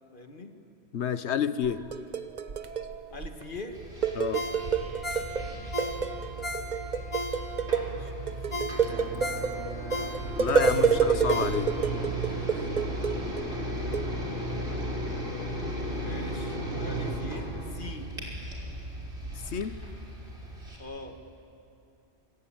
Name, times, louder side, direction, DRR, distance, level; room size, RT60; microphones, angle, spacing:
voice 1, 0.1-0.5 3.1-3.8 5.5-5.9 7.6-10.0 15.9-18.2 20.8-21.2, left 2 dB, 50° left, 5 dB, 1.9 m, -44 dB
voice 2, 0.9-1.9 4.1-4.5 10.4-11.7 19.5-19.8, left 8 dB, 85° left, 13 dB, 1.2 m, -30 dB
sound 1, 1.6-3.6 3.8-5.5 5.8-13.5 13.9-14.1, right 6 dB, 45° right, 1.0 m, -28 dB
sound 2, 3.7-20.8, right 1 dB, 80° right, 5.0 m, -35 dB
Ringtone, 4.3-7.8 8.2-8.3 8.5-12.0 12.4-12.5, left 1 dB, 25° left, 2.6 m, -36 dB
26.5 x 25.0 x 8.9 m, 2.7 s
omnidirectional pair, 1.1 m